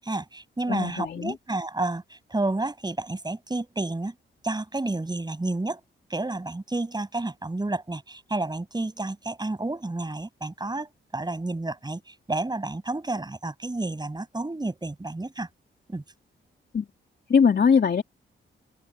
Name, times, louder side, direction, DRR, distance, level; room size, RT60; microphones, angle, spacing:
voice 1, 0.0-4.1 4.4-5.8 6.1-15.5 15.9-16.0, right 2 dB, 20° right, 7.6 m, -30 dB
voice 2, 0.7-1.3 16.7-16.8 17.3-18.0, left 6 dB, 50° left, 2.6 m, -21 dB
cardioid pair, 95°, 21 cm